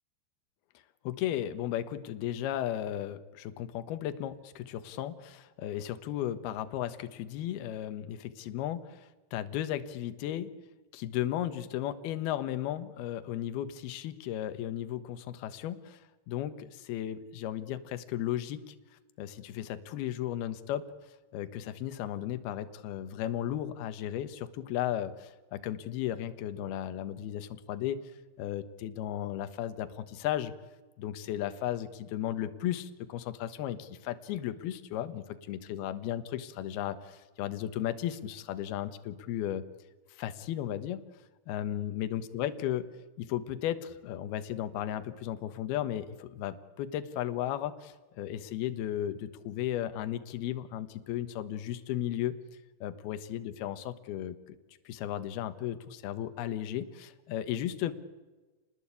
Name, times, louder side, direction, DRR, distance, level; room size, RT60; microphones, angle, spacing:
voice 1, 1.0-10.5 10.9-18.7 19.2-20.8 21.3-28.0 28.4-30.5 31.0-39.6 40.1-41.0 41.5-42.9 43.2-52.4 52.8-54.6 54.9-57.9, left 11 dB, 65° left, 11 dB, 2.9 m, -35 dB
29.5 x 20.0 x 8.5 m, 1.2 s
omnidirectional pair, 5.4 m